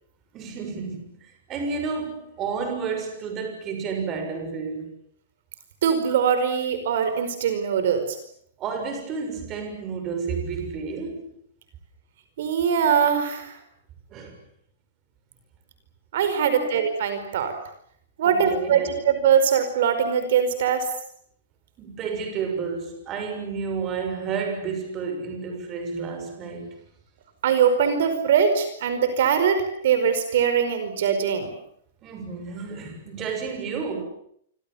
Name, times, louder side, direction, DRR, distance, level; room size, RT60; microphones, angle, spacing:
voice 1, 0.3-4.9 8.6-11.3 14.1-14.4 16.4-16.7 18.2-19.0 21.8-26.7 32.0-34.1, right 5 dB, 20° right, 6.5 m, -31 dB
voice 2, 5.8-8.2 12.4-13.6 16.1-17.5 18.2-20.9 27.4-31.5, right 7 dB, 60° right, 4.9 m, -22 dB
28.0 x 25.5 x 7.2 m
supercardioid pair, 165°, 0 cm